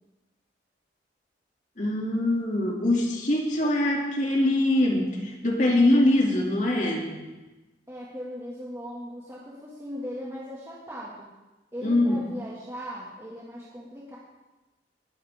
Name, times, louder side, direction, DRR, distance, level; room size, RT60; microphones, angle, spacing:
voice 1, 1.8-7.2 11.8-12.2, left 1 dB, 45° left, -1 dB, 2.7 m, -23 dB
voice 2, 3.6-3.9 7.9-11.3 11.7-14.2, equal, 15° right, -6 dB, 2.0 m, -39 dB
20.5 x 12.5 x 3.6 m, 1.1 s
head